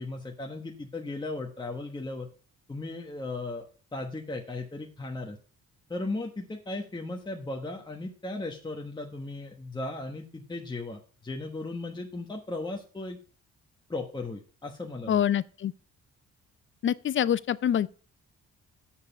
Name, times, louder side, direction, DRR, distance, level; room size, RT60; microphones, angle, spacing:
voice 1, 0.0-2.3 2.7-3.7 3.9-5.4 5.9-13.2 13.9-15.2, left 2 dB, 15° left, 1.1 m, -36 dB
voice 2, 15.1-15.7 16.8-17.9, left 10 dB, 40° left, 0.5 m, -25 dB
7.2 x 6.6 x 5.7 m
cardioid pair, 90°, 30 cm